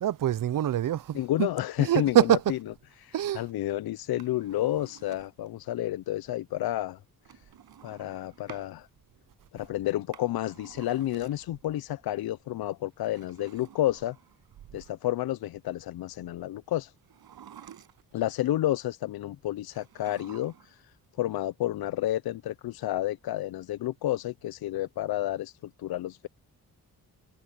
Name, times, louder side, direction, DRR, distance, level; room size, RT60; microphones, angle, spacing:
voice 1, 0.0-1.5 1.8-2.6 3.1-3.5, right 12 dB, 60° right, 0.7 m, -25 dB
voice 2, 1.1-2.6 3.0-7.0 7.8-8.9 9.5-14.2 14.7-16.9 18.1-20.8 21.2-25.5 25.8-26.3, left 14 dB, 80° left, 0.6 m, -30 dB
Drawer open or close, 4.0-5.6 7.2-8.7 9.9-11.7 12.9-14.6 17.0-18.3 19.7-20.8 21.1-21.2, right 9 dB, 85° right, 6.2 m, -52 dB
cardioid pair, 75°, 36 cm